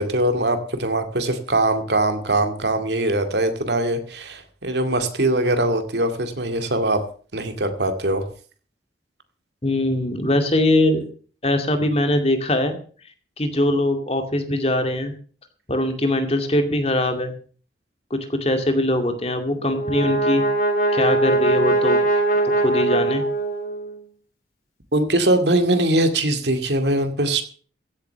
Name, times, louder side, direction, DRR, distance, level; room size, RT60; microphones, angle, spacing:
voice 1, 0.0-7.0 7.3-8.3 24.9-27.4, right 1 dB, 70° right, 7 dB, 2.3 m, -21 dB
voice 2, 9.6-11.1 11.4-12.8 13.4-15.1 15.7-17.3 18.1-20.4 20.9-22.0 22.4-23.2, left 1 dB, 35° left, 6 dB, 2.2 m, -21 dB
Brass instrument, 19.5-23.9, right 2 dB, 50° left, 3.6 m, -21 dB
15.5 x 8.2 x 6.8 m, 0.42 s
head